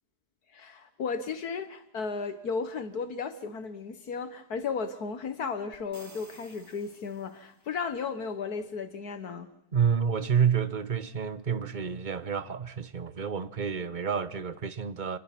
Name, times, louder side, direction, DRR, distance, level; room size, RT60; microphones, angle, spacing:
voice 1, 0.5-9.5, left 5 dB, 70° left, 1.8 m, -34 dB
sound 1, 5.7-7.8, right 1 dB, 10° right, 1.3 m, -54 dB
voice 2, 9.7-15.2, right 7 dB, 35° right, 1.0 m, -29 dB
28.5 x 20.5 x 6.0 m
omnidirectional pair, 1.7 m